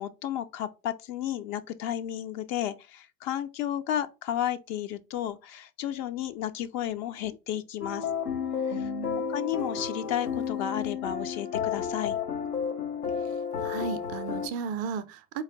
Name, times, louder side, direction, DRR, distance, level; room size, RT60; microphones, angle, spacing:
voice 1, 0.0-8.1 9.3-12.2, left 11 dB, 40° left, 0.4 m, -32 dB
sound 1, 7.8-14.5, left 7 dB, 85° left, 0.7 m, -32 dB
voice 2, 8.7-9.2 13.6-15.4, right 6 dB, 35° right, 0.4 m, -35 dB
4.2 x 2.9 x 3.7 m
figure-of-eight pair, 65°, 45 cm